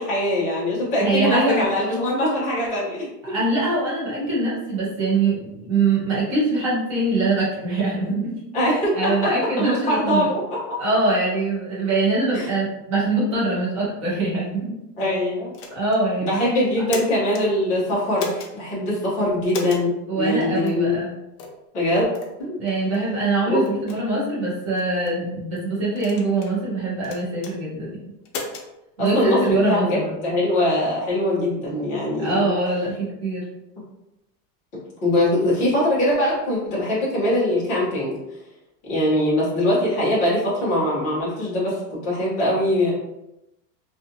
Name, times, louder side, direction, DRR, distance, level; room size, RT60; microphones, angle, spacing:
voice 1, 0.0-3.3 8.5-9.3 9.6-10.8 12.3-12.5 15.0-15.5 16.2-21.0 21.7-22.1 22.4-22.6 23.5-23.6 29.0-29.8 30.2-32.5 35.0-38.2 38.9-42.9, left 1 dB, 15° left, -8 dB, 0.7 m, -22 dB
voice 2, 1.0-1.6 3.2-10.3 10.8-14.6 15.7-16.4 20.1-21.1 22.6-28.0 29.0-30.1 32.2-33.4, right 2 dB, 25° right, -7 dB, 0.3 m, -23 dB
sound 1, 15.5-16.0 16.7-17.4 18.2-18.5 19.5-19.9 20.7-20.8 21.4-21.6 22.1-22.3 22.9-23.1 23.6-24.0 24.8-25.2 26.0-26.6 27.0-27.5 28.3-28.7, left 3 dB, 65° left, 0.7 m, -33 dB
2.4 x 2.3 x 2.6 m, 0.91 s
supercardioid pair, 175°, 48 cm